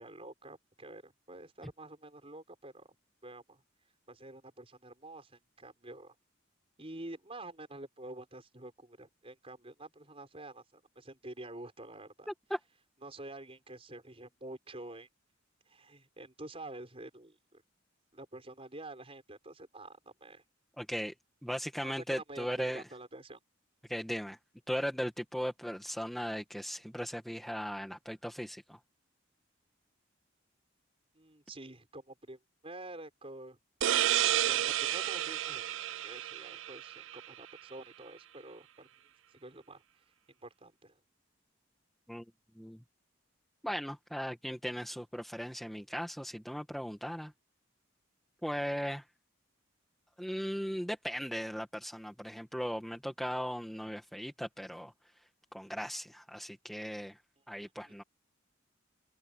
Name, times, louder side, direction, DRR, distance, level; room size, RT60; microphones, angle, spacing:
voice 1, 0.0-2.9 3.2-3.6 4.1-6.1 6.8-12.3 13.0-15.1 15.7-17.6 18.1-20.4 21.8-23.4 31.1-33.6 34.4-35.7 36.0-38.9 39.3-39.8 40.4-41.0 57.9-58.0, right 2 dB, 30° right, 5.7 m, -48 dB
voice 2, 20.8-21.1 21.4-22.8 23.9-24.4 24.7-28.8 42.1-42.3 42.6-42.8 43.6-47.3 48.4-49.0 50.2-54.9 55.5-57.2 57.5-58.0, equal, ahead, 1.9 m, -37 dB
sound 1, 33.8-37.3, right 12 dB, 70° right, 0.4 m, -31 dB
head